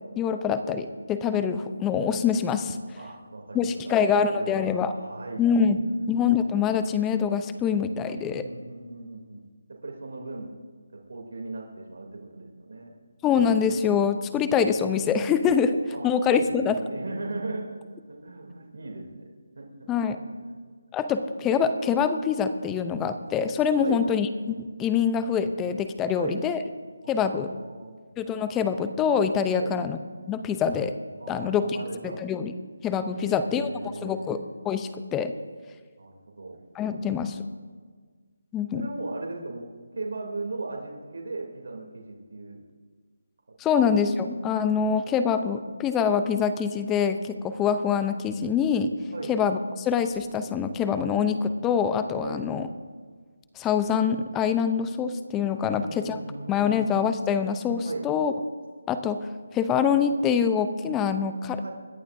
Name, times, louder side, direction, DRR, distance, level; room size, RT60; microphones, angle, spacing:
voice 1, 0.2-2.8 3.5-4.9 5.4-5.8 6.1-8.4 13.2-15.8 16.0-16.8 19.9-20.2 20.9-24.3 24.8-26.6 27.1-27.5 28.2-30.0 30.3-30.9 31.3-31.8 32.0-32.5 32.8-35.3 36.7-37.4 38.5-38.9 43.6-48.9 49.3-52.7 53.6-56.2 56.5-58.3 58.9-61.6, left 7 dB, 10° left, 10 dB, 0.6 m, -25 dB
voice 2, 3.0-4.7 4.9-6.1 8.2-9.4 9.8-10.6 11.1-12.1 12.3-12.9 15.9-19.3 19.6-20.5 23.8-24.0 26.1-26.4 27.0-28.0 29.5-29.8 31.2-32.2 33.1-34.3 36.0-36.6 38.7-42.6 43.6-43.7 49.1-49.4 52.2-52.5 55.6-56.9 57.8-58.1 61.6-61.7, right 3 dB, 65° right, -1 dB, 2.8 m, -38 dB
26.0 x 11.0 x 2.7 m, 1.6 s
figure-of-eight pair, 165°, 0 cm